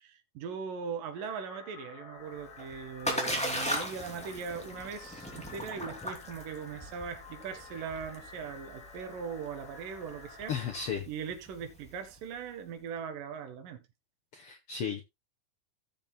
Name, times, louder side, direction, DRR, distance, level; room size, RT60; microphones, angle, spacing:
voice 1, 0.0-10.5 11.1-13.8, right 6 dB, 70° right, 2.9 m, -40 dB
sound 1, 1.1-10.9, left 4 dB, 75° left, 4.7 m, -51 dB
Splash splatter, 2.4-12.2, equal, ahead, 1.8 m, -38 dB
voice 2, 10.5-11.1 14.3-15.0, left 7 dB, 90° left, 1.2 m, -34 dB
16.5 x 7.2 x 2.2 m
omnidirectional pair, 4.3 m